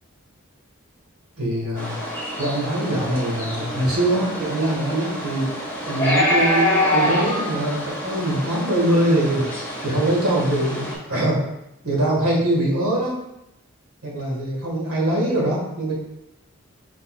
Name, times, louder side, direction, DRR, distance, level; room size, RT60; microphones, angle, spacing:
voice 1, 1.4-2.0 2.4-5.5 5.9-9.4 9.8-11.5 11.8-13.2 14.0-15.9, right 1 dB, 90° right, -3 dB, 1.7 m, -22 dB
sound 1, 1.8-10.9, left 1 dB, 10° left, 1.4 m, -26 dB
5.5 x 4.1 x 2.4 m, 0.85 s
head